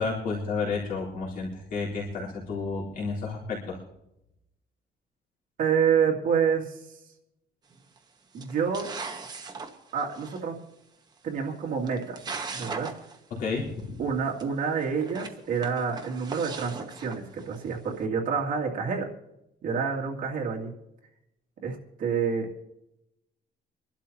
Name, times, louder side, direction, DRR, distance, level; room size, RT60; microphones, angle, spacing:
voice 1, 0.0-3.8 13.4-14.0, left 4 dB, 60° left, -5 dB, 3.8 m, -31 dB
voice 2, 5.6-6.8 8.3-8.9 9.9-10.6 11.2-12.2 12.5-12.9 14.0-19.1 19.6-20.7 21.6-22.5, right 6 dB, 55° right, -1 dB, 2.4 m, -28 dB
sound 1, 7.7-8.0 8.4-10.4 11.5-11.6 11.8-13.2 13.4-13.5 13.8-13.9 14.4-14.5 14.9-17.7, right 4 dB, 25° right, 1.2 m, -39 dB
25.0 x 12.0 x 2.9 m, 0.84 s
cardioid pair, 160°, 16 cm